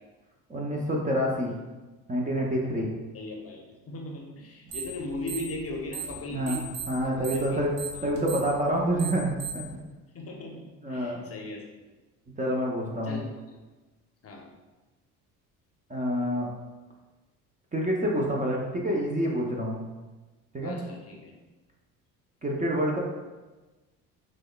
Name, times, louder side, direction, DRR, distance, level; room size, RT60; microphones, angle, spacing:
voice 1, 0.5-1.5 2.1-2.9 6.3-7.7 8.0-9.7 10.8-11.2 12.4-13.2 15.9-16.5 17.7-19.8 20.5-20.8 22.4-23.0, equal, 20° right, -2 dB, 0.6 m, -27 dB
voice 2, 3.1-6.6 7.0-7.6 7.9-8.1 10.1-10.6 10.9-11.9 13.0-13.6 14.2-14.5 20.6-21.3, left 2 dB, 35° left, 0 dB, 0.7 m, -38 dB
sound 1, 4.7-5.0 5.2-6.2 6.5-9.7, right 7 dB, 45° right, 1.2 m, -37 dB
5.9 x 2.2 x 2.2 m, 1.2 s
hypercardioid pair, 65°, 43 cm